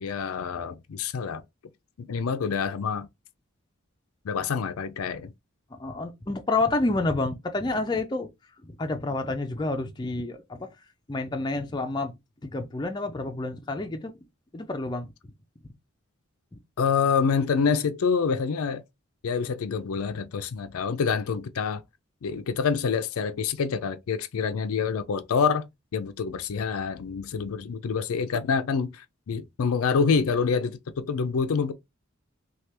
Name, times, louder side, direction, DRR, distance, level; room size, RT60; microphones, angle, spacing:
voice 1, 0.0-1.4 2.0-3.1 4.2-5.3 16.8-18.8 19.2-21.8 22.2-31.7, left 5 dB, 80° left, 0.4 m, -27 dB
voice 2, 5.8-8.3 8.6-10.7 11.1-12.1 12.4-14.1 14.5-15.1, left 2 dB, 20° left, 0.4 m, -29 dB
3.3 x 2.3 x 2.8 m
head